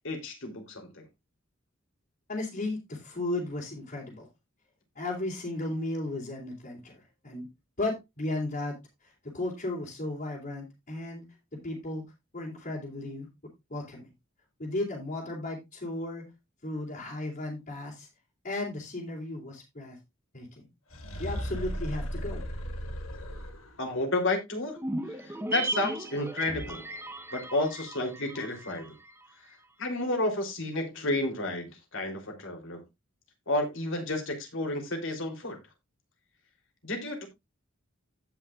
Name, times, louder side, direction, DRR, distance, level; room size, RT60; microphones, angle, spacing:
voice 1, 0.0-1.0 23.8-24.8 25.1-26.9 27.3-29.0 29.4-32.8 33.5-35.6 36.8-37.3, left 2 dB, 65° left, 3.4 m, -31 dB
voice 2, 2.3-4.3 4.9-7.5 7.8-8.7 9.3-11.2 11.6-12.0 12.3-13.3 13.7-14.1 14.6-16.2 16.6-18.1 18.4-20.0 20.3-20.6 21.2-22.4, left 2 dB, 45° left, 3.3 m, -35 dB
sound 1, 20.9-23.9, equal, 80° left, 1.8 m, -36 dB
sound 2, 24.8-29.3 29.5-29.6, right 2 dB, 10° right, 1.0 m, -36 dB
16.0 x 5.6 x 2.4 m
head